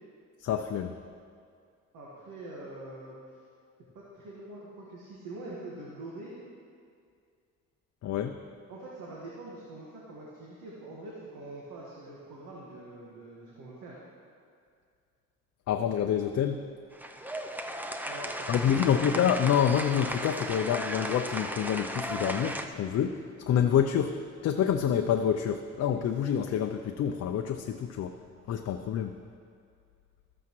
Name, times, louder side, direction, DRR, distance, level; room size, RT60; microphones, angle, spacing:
voice 1, 0.4-1.0 8.0-8.4 15.7-16.6 18.5-23.2 23.5-24.2 24.4-28.2 28.5-29.2, left 9 dB, 55° left, 6 dB, 0.5 m, -27 dB
voice 2, 1.9-3.4 3.9-6.3 8.7-14.0 18.1-18.9, right 2 dB, 85° right, -5 dB, 1.6 m, -44 dB
sound 1, 16.9-22.7, right 1 dB, 5° right, 0.5 m, -35 dB
13.0 x 8.4 x 3.1 m, 2.3 s
cardioid pair, 90°, 30 cm